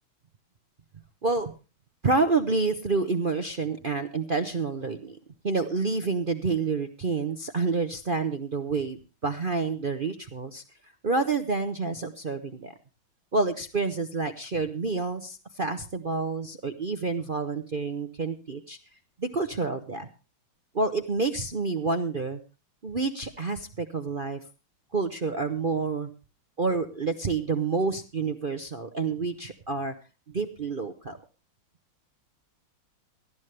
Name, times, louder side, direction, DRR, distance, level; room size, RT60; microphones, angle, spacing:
voice 1, 1.2-1.5 2.0-5.2 5.4-10.6 11.0-12.7 13.3-18.8 19.2-20.1 20.7-22.4 22.8-24.4 24.9-26.1 26.6-29.9 30.3-31.2, right 4 dB, 45° right, 6 dB, 0.7 m, -28 dB
19.0 x 12.5 x 3.3 m, 0.31 s
omnidirectional pair, 2.2 m